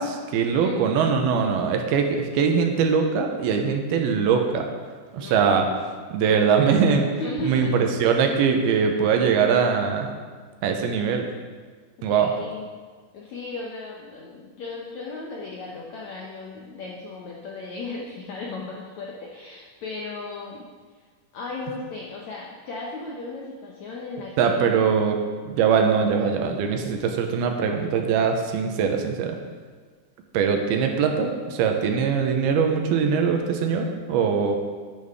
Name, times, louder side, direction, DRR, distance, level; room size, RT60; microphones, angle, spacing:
voice 1, 0.0-4.7 5.1-5.7 6.1-7.1 7.4-10.1 10.6-11.3 12.0-12.3 24.4-25.2 25.4-29.4 30.3-34.6, right 6 dB, 85° right, 4 dB, 2.8 m, -22 dB
voice 2, 5.2-5.5 6.2-6.4 7.2-7.7 8.0-8.2 12.0-12.7 13.1-20.6 21.3-24.8, left 3 dB, 75° left, -2 dB, 1.6 m, -36 dB
10.5 x 10.5 x 3.6 m, 1.5 s
omnidirectional pair, 4.5 m